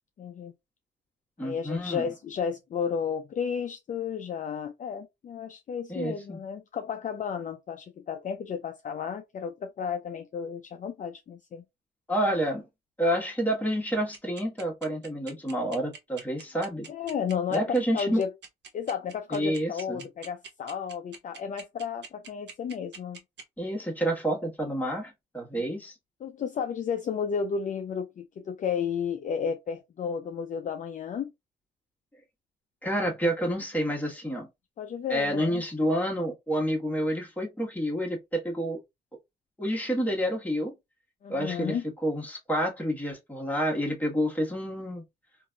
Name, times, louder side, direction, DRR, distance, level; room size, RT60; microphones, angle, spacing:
voice 1, 0.2-0.5 1.4-11.6 16.9-18.3 18.7-23.2 25.5-25.6 26.2-31.3 34.8-35.6 41.2-41.8, left 7 dB, 40° left, 0.4 m, -33 dB
voice 2, 1.4-2.1 5.9-6.4 12.1-12.7 13.0-16.9 17.5-18.2 19.3-20.0 23.6-25.9 32.8-34.5 35.1-38.8 39.6-40.7 41.3-41.8 42.0-45.0, equal, 10° left, 1.2 m, -29 dB
sound 1, 14.1-23.4, right 6 dB, 60° right, 0.8 m, -44 dB
3.2 x 2.6 x 2.2 m
cardioid pair, 90°, 20 cm